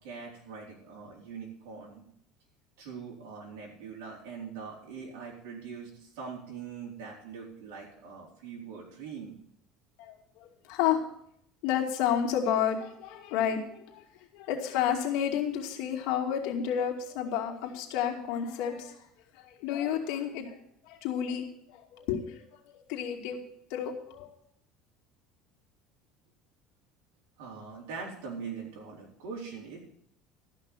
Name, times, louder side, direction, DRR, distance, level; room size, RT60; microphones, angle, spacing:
voice 1, 0.0-2.0 2.8-9.4 27.4-29.8, right 5 dB, 90° right, -3 dB, 4.2 m, -42 dB
voice 2, 10.0-11.0 11.6-14.0 14.3-19.0 19.4-20.6 20.9-21.5 21.7-22.4 22.9-23.4 23.7-24.3, left 9 dB, 75° left, 2 dB, 2.4 m, -31 dB
13.5 x 6.0 x 9.1 m, 0.69 s
cardioid pair, 125°, 0 cm